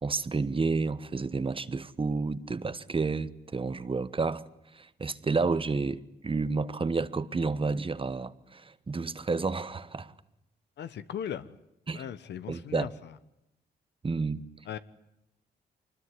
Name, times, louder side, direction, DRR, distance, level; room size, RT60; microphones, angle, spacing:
voice 1, 0.0-4.5 4.7-10.1 11.9-12.1 12.5-12.9 14.0-14.5, right 4 dB, 30° right, 1.2 m, -30 dB
voice 2, 10.8-11.5 11.9-12.9 14.7-14.8, left 9 dB, 75° left, 1.2 m, -37 dB
24.5 x 20.5 x 9.8 m
cardioid pair, 70°, 18 cm